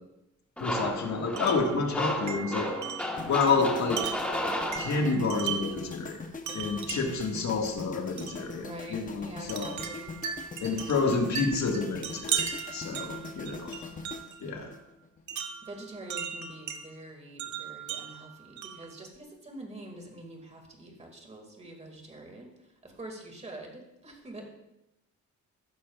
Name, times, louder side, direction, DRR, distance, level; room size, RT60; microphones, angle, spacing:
voice 1, 0.6-2.7 3.2-4.0 4.8-6.2 6.5-9.8 10.6-13.9 14.4-14.7, left 4 dB, 65° left, 1 dB, 1.7 m, -29 dB
sound 1, 0.6-5.4, left 1 dB, 5° left, 1.2 m, -33 dB
Wind chime, 1.4-1.7 2.3-5.8 6.5-7.3 8.2-8.4 9.5-14.4 15.3-16.8 17.4-18.9, right 8 dB, 65° right, 1.0 m, -37 dB
sound 2, 3.2-15.4 15.6-15.9, left 4 dB, 25° left, 0.8 m, -42 dB
voice 2, 8.6-10.5 15.6-24.5, right 1 dB, 20° right, 2 dB, 2.1 m, -45 dB
14.5 x 12.5 x 2.4 m, 0.90 s
wide cardioid pair, 175°, 30 cm